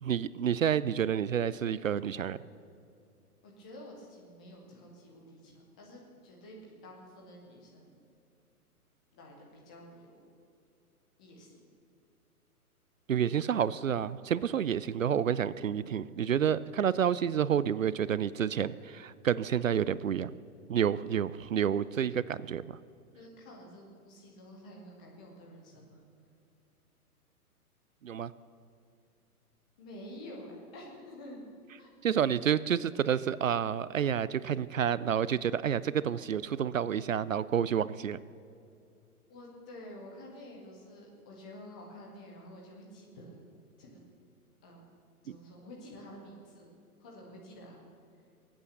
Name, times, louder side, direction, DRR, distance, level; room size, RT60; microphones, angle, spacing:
voice 1, 0.0-2.4 13.1-20.3 20.7-22.8 28.0-28.3 32.0-38.2 45.3-45.4, right 8 dB, 60° right, 18 dB, 0.5 m, -29 dB
voice 2, 3.4-7.9 9.1-10.1 11.2-11.6 23.2-26.0 29.8-31.4 31.8-31.9 39.3-43.4 43.8-44.0 44.6-44.8 45.2-46.7 47.0-47.8, left 1 dB, 5° left, -2 dB, 0.5 m, -49 dB
20.5 x 8.8 x 6.8 m, 2.6 s
figure-of-eight pair, 125°, 45 cm